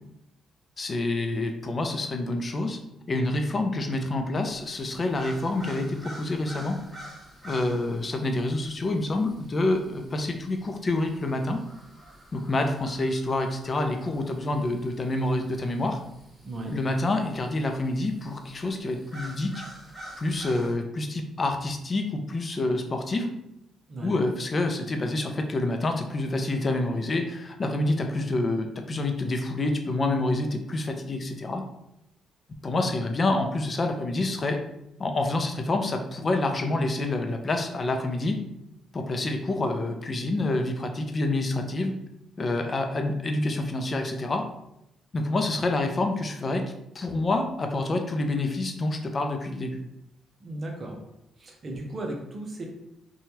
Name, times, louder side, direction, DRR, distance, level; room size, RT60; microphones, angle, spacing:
voice 1, 0.8-2.8 3.1-6.8 7.4-11.6 12.3-16.0 16.7-19.5 20.2-23.3 24.0-31.6 32.6-34.6 35.0-38.4 38.9-41.9 42.4-44.4 45.1-49.8, left 2 dB, 35° left, 5 dB, 0.4 m, -27 dB
sound 1, 4.5-20.7, right 1 dB, 10° right, 1.2 m, -48 dB
voice 2, 16.4-16.8 23.9-24.2 50.4-51.0 51.4-52.7, right 1 dB, 40° right, 1 dB, 0.7 m, -35 dB
3.0 x 2.3 x 2.8 m, 0.83 s
cardioid pair, 90°, 0 cm